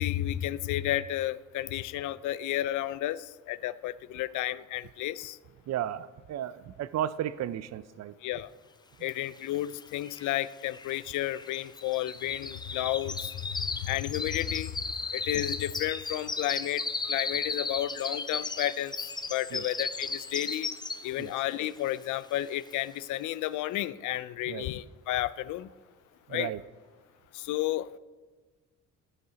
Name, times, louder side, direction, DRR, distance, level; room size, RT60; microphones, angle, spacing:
voice 1, 0.0-5.4 8.2-8.5 9.0-13.3 13.6-14.7 15.1-20.7 21.0-25.7 26.3-26.5 27.3-28.0, left 14 dB, 80° left, 17 dB, 0.5 m, -32 dB
voice 2, 5.7-8.1 9.0-9.1 19.5-19.7 21.2-21.3 24.5-24.7 26.3-26.6, right 11 dB, 60° right, 16 dB, 0.5 m, -34 dB
sound 1, 9.5-9.6 9.8-21.3 21.7-22.0 22.4-22.5, left 3 dB, 15° left, 0.5 m, -36 dB
10.5 x 6.6 x 5.0 m, 1.4 s
cardioid pair, 90°, 30 cm